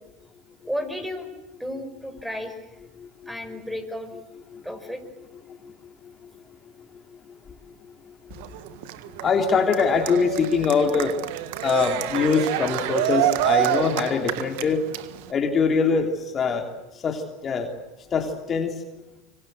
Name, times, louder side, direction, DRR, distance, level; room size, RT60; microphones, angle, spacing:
voice 1, 0.6-1.3 1.6-2.5 3.3-4.1 4.6-5.0, equal, 5° right, 8 dB, 5.3 m, -32 dB
voice 2, 3.0-3.3 4.5-4.6 5.6-5.7 9.1-11.2 11.6-14.8 15.3-16.7 16.9-17.7 18.1-18.8, left 5 dB, 35° left, 3 dB, 3.2 m, -23 dB
Cheering, 8.3-15.3, right 13 dB, 70° right, 1.6 m, -27 dB
25.5 x 25.0 x 8.0 m, 0.97 s
hypercardioid pair, 95°, 0 cm